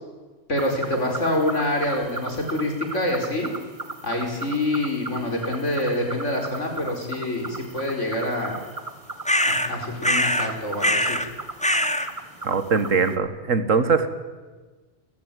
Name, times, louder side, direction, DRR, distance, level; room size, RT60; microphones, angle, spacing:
voice 1, 0.5-3.5 4.0-8.6 9.4-11.2, left 1 dB, 70° left, 2 dB, 5.1 m, -26 dB
sound 1, 0.6-13.2, right 3 dB, 30° right, 1.4 m, -37 dB
sound 2, 9.3-9.7 10.0-10.5 10.8-11.3 11.6-12.1, left 1 dB, 5° left, 1.1 m, -22 dB
voice 2, 12.4-14.1, right 5 dB, 85° right, 11 dB, 2.0 m, -21 dB
29.5 x 14.5 x 9.2 m, 1.3 s
omnidirectional pair, 1.3 m